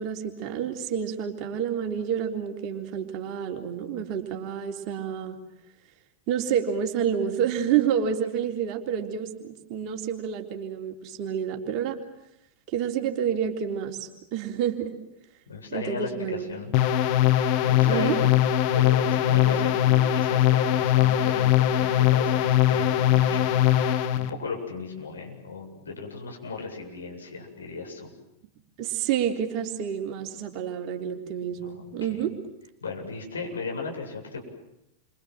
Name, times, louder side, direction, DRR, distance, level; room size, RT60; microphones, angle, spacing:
voice 1, 0.0-5.4 6.3-12.0 12.7-14.9 15.7-16.5 17.8-18.2 28.8-32.4, right 8 dB, 40° right, 3 dB, 3.7 m, -29 dB
voice 2, 15.5-16.7 17.6-18.3 18.7-28.1 31.5-31.8 32.1-32.3 32.8-34.4, left 4 dB, 70° left, 1 dB, 7.9 m, -36 dB
sound 1, 16.7-24.3, left 12 dB, 45° left, 1.8 m, -21 dB
29.5 x 26.0 x 7.7 m, 0.86 s
figure-of-eight pair, 90°, 0 cm